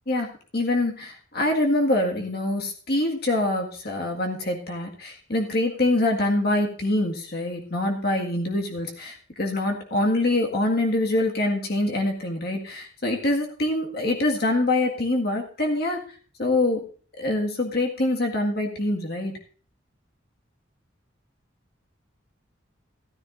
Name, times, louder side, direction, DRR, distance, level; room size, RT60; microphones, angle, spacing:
voice 1, 0.1-16.0 16.4-16.8 17.2-19.4, left 2 dB, 55° left, 1 dB, 1.8 m, -25 dB
14.5 x 13.5 x 2.6 m, 0.41 s
head